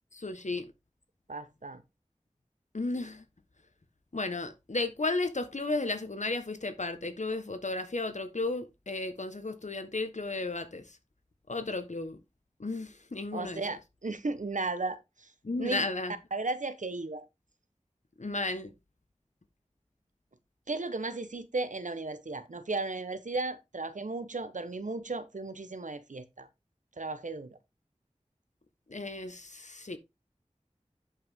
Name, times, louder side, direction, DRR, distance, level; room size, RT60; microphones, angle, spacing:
voice 1, 0.1-0.7 2.7-3.2 4.1-11.0 11.5-12.2 12.6-13.6 15.4-16.1 18.2-18.7 28.9-30.0, left 2 dB, 75° left, 1.4 m, -34 dB
voice 2, 1.3-1.8 13.3-15.3 15.6-15.9 16.3-17.2 20.7-26.5 27.0-27.6, right 3 dB, 90° right, 1.0 m, -35 dB
11.0 x 5.6 x 3.7 m
wide cardioid pair, 45°, 13 cm